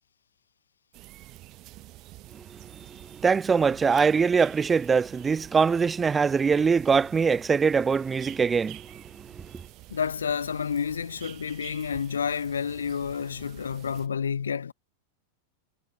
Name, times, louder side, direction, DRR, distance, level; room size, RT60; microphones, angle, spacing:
sound 1, 0.9-14.1, right 18 dB, 40° right, 4.4 m, -48 dB
voice 1, 3.2-9.0, right 5 dB, 15° right, 0.5 m, -22 dB
voice 2, 9.9-14.7, left 7 dB, 70° left, 2.0 m, -30 dB
figure-of-eight pair, 90°, 0 cm